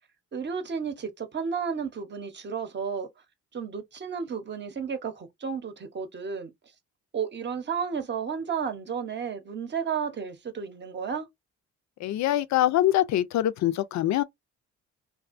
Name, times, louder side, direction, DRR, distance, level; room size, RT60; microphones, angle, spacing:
voice 1, 0.3-3.1 3.5-6.5 7.1-11.3, right 6 dB, 35° right, 0.7 m, -32 dB
voice 2, 12.0-14.2, left 13 dB, 65° left, 0.4 m, -24 dB
2.5 x 2.3 x 2.4 m
cardioid pair, 90°, 30 cm